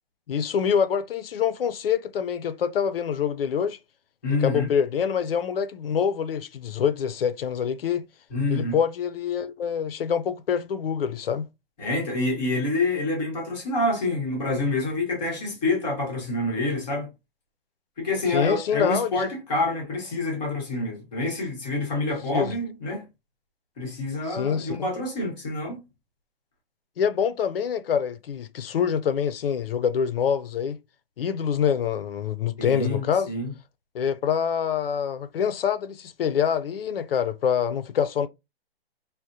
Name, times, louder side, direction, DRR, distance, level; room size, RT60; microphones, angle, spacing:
voice 1, 0.3-3.8 4.4-8.0 8.5-11.5 18.3-19.3 22.3-22.5 24.3-24.9 27.0-30.8 31.2-33.3 33.9-38.3, left 7 dB, 65° left, 0.5 m, -25 dB
voice 2, 4.2-4.7 8.3-8.8 11.8-17.1 18.0-23.0 23.8-25.9 32.6-33.5, left 2 dB, 5° left, 0.5 m, -27 dB
3.5 x 2.1 x 2.7 m
hypercardioid pair, 170°, 31 cm